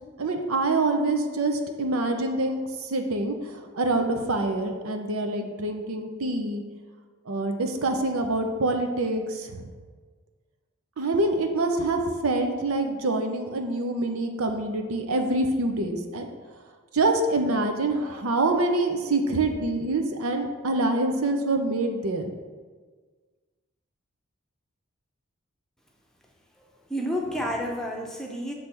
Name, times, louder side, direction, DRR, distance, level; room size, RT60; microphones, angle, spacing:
voice 1, 0.2-6.6 7.3-9.6 11.0-16.3 16.9-22.3, right 2 dB, 85° right, 5 dB, 0.8 m, -26 dB
voice 2, 26.6-28.5, equal, ahead, -1 dB, 0.6 m, -30 dB
7.0 x 3.3 x 6.1 m, 1.5 s
head